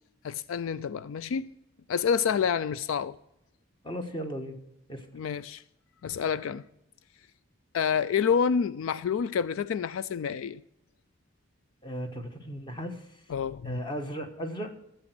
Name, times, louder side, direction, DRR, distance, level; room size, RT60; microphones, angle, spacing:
voice 1, 0.2-1.5 1.9-3.2 5.1-5.6 6.0-6.6 7.7-10.6 13.3-13.8, left 7 dB, 75° left, 0.3 m, -28 dB
voice 2, 3.8-4.6 4.9-5.1 11.8-13.2 13.6-14.7, equal, 25° left, 1.3 m, -36 dB
12.5 x 8.0 x 6.1 m
head